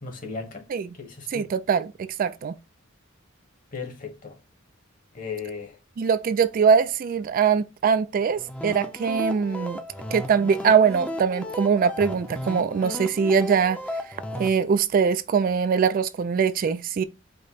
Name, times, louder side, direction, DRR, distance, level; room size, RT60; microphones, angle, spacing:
voice 1, 0.0-0.6 1.0-1.5 3.7-4.4 5.1-5.8, left 5 dB, 40° left, 1.2 m, -36 dB
voice 2, 1.3-2.5 6.0-9.8 10.1-13.8 14.3-17.0, right 6 dB, 45° right, 0.3 m, -22 dB
sound 1, 8.4-14.5, left 1 dB, 5° left, 0.6 m, -35 dB
5.0 x 2.1 x 4.1 m
head